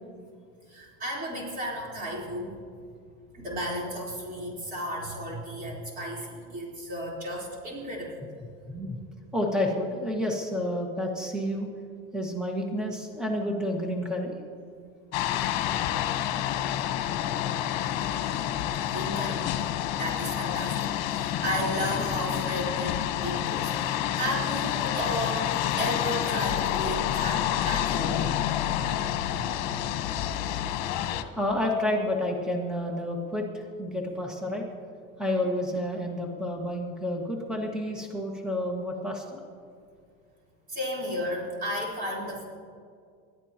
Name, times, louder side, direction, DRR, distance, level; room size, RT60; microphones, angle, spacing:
voice 1, 0.7-2.5 3.3-8.2 18.8-19.5 20.0-25.5 25.8-28.3 40.7-42.4, equal, 30° right, -4 dB, 4.0 m, -33 dB
voice 2, 9.3-11.7 12.1-14.3 15.7-15.8 31.4-34.7 35.2-39.4, left 1 dB, 5° right, 0 dB, 1.8 m, -30 dB
sound 1, 15.1-31.2, left 11 dB, 65° left, 1.2 m, -28 dB
28.0 x 13.0 x 3.0 m, 2.2 s
cardioid pair, 140°, 29 cm